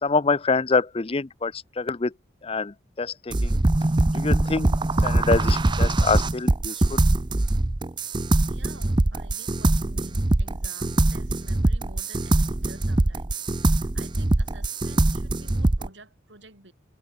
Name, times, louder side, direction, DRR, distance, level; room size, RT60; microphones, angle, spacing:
voice 1, 0.0-2.1 2.4-3.6 4.1-4.7 5.0-7.0, left 4 dB, 30° left, 0.5 m, -26 dB
sound 1, 3.3-15.9, right 2 dB, 25° right, 0.6 m, -22 dB
voice 2, 8.4-16.7, right 2 dB, 65° right, 7.1 m, -49 dB
head